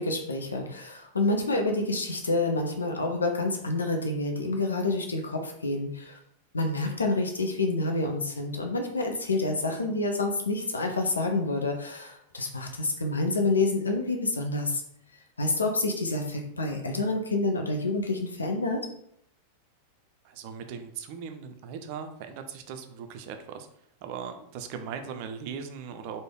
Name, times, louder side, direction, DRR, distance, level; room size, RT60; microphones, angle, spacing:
voice 1, 0.0-6.2 6.5-14.8 15.4-18.8, left 2 dB, 75° left, 3 dB, 0.5 m, -28 dB
voice 2, 20.2-23.7 24.0-26.2, right 6 dB, 45° right, 7 dB, 0.4 m, -39 dB
3.2 x 2.1 x 3.6 m, 0.70 s
figure-of-eight pair, 90°, 0 cm